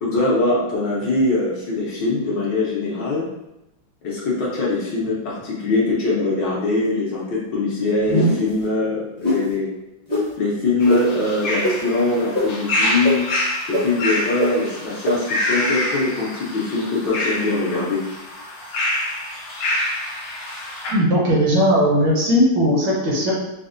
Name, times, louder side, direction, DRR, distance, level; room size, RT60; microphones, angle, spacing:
voice 1, 0.0-3.3 4.0-9.7 10.4-13.3 13.7-18.0, left 2 dB, 65° left, -6 dB, 1.3 m, -22 dB
sound 1, 8.1-8.5 9.2-9.4 10.1-10.2 10.9-11.0 11.6-11.7 12.3-12.4 13.0-13.1 13.7-13.8 14.4-14.5 15.0-15.1, equal, 35° left, 0.7 m, -20 dB
sound 2, 10.8-20.9, left 1 dB, 85° left, 0.7 m, -26 dB
voice 2, 20.9-23.3, equal, 70° right, -5 dB, 1.5 m, -18 dB
4.1 x 2.0 x 2.5 m, 0.92 s
omnidirectional pair, 2.3 m